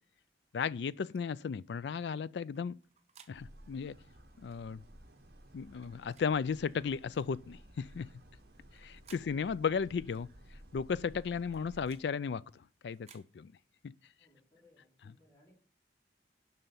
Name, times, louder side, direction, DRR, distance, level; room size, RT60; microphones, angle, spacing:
voice 1, 0.5-2.8 3.3-3.9 4.4-4.8 5.5-8.1 8.8-10.3 10.7-12.4 12.8-13.5 15.1-15.2, left 6 dB, 75° left, 0.4 m, -35 dB
sound 1, 1.0-1.2 2.5-3.4 4.4-4.6 5.7-6.3 7.1-7.3 8.5-9.3 10.1-10.3 11.3-12.1 12.9-13.3, right 7 dB, 35° right, 0.8 m, -61 dB
sound 2, 3.3-12.0, right 1 dB, 60° right, 1.5 m, -56 dB
voice 2, 14.2-15.6, left 1 dB, 15° left, 3.2 m, -65 dB
7.5 x 5.7 x 6.9 m
head